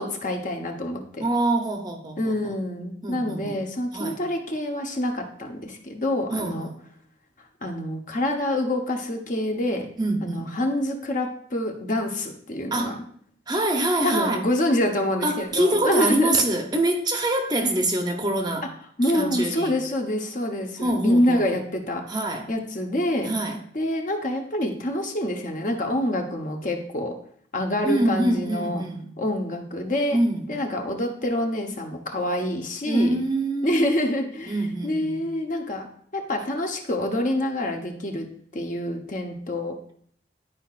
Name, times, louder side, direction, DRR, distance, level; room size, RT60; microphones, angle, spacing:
voice 1, 0.0-1.2 2.2-6.7 7.6-9.9 10.2-12.9 14.0-16.5 17.6-17.8 19.0-22.0 22.5-23.3 23.7-27.1 27.5-28.8 29.2-30.2 30.5-33.2 33.6-34.5 34.8-35.9 36.1-38.3 38.5-39.7, left 1 dB, 45° left, 3 dB, 0.9 m, -26 dB
voice 2, 1.2-2.5 3.0-3.6 3.9-4.2 6.3-6.8 10.0-10.5 12.7-13.0 13.5-14.5 15.2-18.7 19.0-19.7 20.8-21.6 22.1-22.5 23.2-23.6 27.9-29.1 30.1-30.5 32.8-33.9 34.5-35.2, right 1 dB, 20° right, 3 dB, 0.7 m, -25 dB
11.0 x 4.7 x 2.4 m, 0.62 s
head